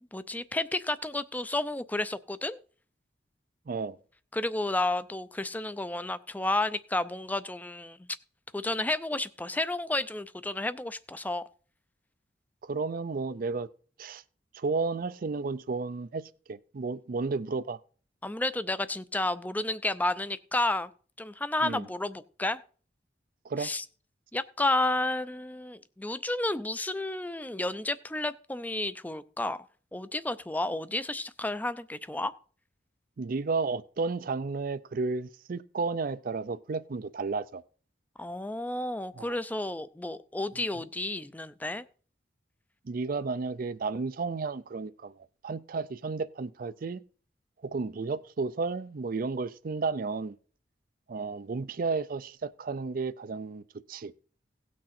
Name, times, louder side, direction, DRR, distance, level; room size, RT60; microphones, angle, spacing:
voice 1, 0.1-2.6 4.3-8.1 8.5-11.4 18.2-20.9 21.2-22.6 23.6-23.8 24.3-29.6 29.9-32.3 38.2-41.8, left 2 dB, 10° left, 0.5 m, -31 dB
voice 2, 3.7-4.0 12.6-13.7 14.0-14.2 14.5-17.8 21.6-21.9 23.4-23.7 33.2-37.6 39.2-39.4 42.9-47.0 47.6-50.4 51.1-53.6 53.9-54.1, right 4 dB, 50° right, 0.5 m, -32 dB
17.0 x 6.3 x 4.3 m
head